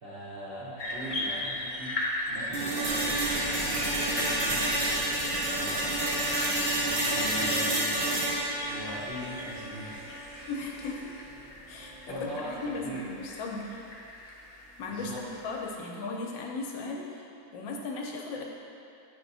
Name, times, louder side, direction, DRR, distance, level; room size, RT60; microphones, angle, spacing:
voice 1, 0.0-2.0 2.3-6.1 6.8-8.0 8.7-10.1 10.8-11.0 12.1-13.1 14.9-15.3, equal, 45° right, -9 dB, 0.7 m, -40 dB
sound 1, 0.8-15.7, left 1 dB, 50° left, 0.6 m, -39 dB
sound 2, 2.5-10.5, right 1 dB, 70° right, 1.7 m, -30 dB
sound 3, 2.8-13.6 13.9-14.0, equal, ahead, 0.6 m, -41 dB
voice 2, 10.5-11.1 11.7-13.8 14.8-17.3 17.5-18.4, left 3 dB, 80° left, -1 dB, 1.5 m, -37 dB
8.9 x 3.6 x 4.1 m, 2.7 s
omnidirectional pair, 2.1 m